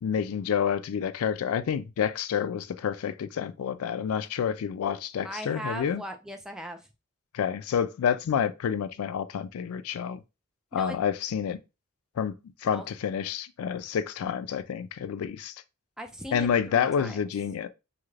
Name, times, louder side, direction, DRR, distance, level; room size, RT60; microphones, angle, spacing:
voice 1, 0.0-6.0 7.3-10.2 10.7-11.6 12.2-15.5 16.3-17.7, left 7 dB, 85° left, 0.3 m, -29 dB
voice 2, 5.2-6.9 10.7-11.0 12.6-12.8 16.0-17.3, equal, 5° right, 0.3 m, -39 dB
2.7 x 2.4 x 3.1 m
head